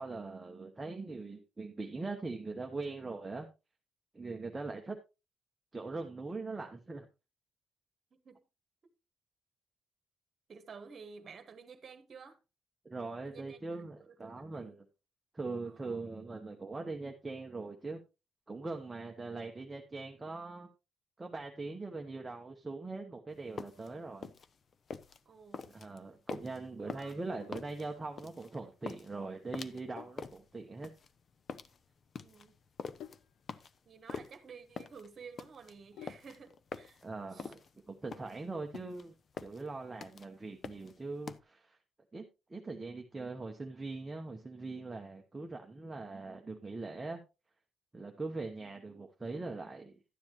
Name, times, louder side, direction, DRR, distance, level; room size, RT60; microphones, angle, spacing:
voice 1, 0.0-3.5 4.1-5.0 5.7-7.1 12.8-14.9 15.3-18.0 18.5-20.7 21.2-24.3 25.7-30.9 37.0-37.6 37.9-39.1 39.4-41.8 42.1-47.2 47.9-50.0, right 3 dB, 15° right, 0.9 m, -41 dB
voice 2, 10.5-12.4 13.2-13.8 14.1-14.8 15.6-16.0 19.0-19.1 25.2-25.8 26.8-27.1 32.2-32.5 33.8-37.0 37.3-37.5, right 5 dB, 35° right, 1.5 m, -52 dB
sound 1, 23.4-41.4, left 5 dB, 35° left, 0.5 m, -45 dB
Sink (filling or washing), 27.4-36.5, left 9 dB, 85° left, 0.6 m, -57 dB
12.0 x 9.6 x 3.0 m
cardioid pair, 170°, 0 cm